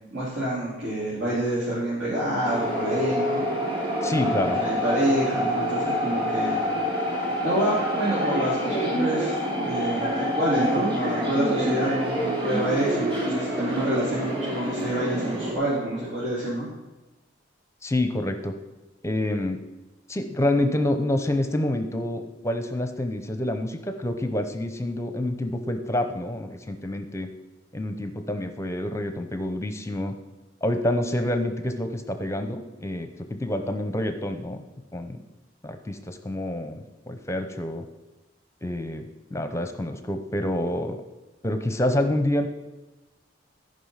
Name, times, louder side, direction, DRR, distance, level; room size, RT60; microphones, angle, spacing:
voice 1, 0.1-3.4 4.2-6.6 7.4-16.7, right 1 dB, 70° right, -10 dB, 3.6 m, -27 dB
sound 1, 2.4-15.5, equal, 25° right, 2.6 m, -27 dB
voice 2, 4.0-4.6 17.8-18.5 19.0-19.6 20.1-27.3 27.7-30.1 30.6-34.6 34.9-35.2 35.6-37.8 38.6-39.0 39.3-41.0 41.4-42.5, left 1 dB, 15° left, 7 dB, 0.7 m, -27 dB
14.0 x 5.4 x 5.7 m, 1.1 s
head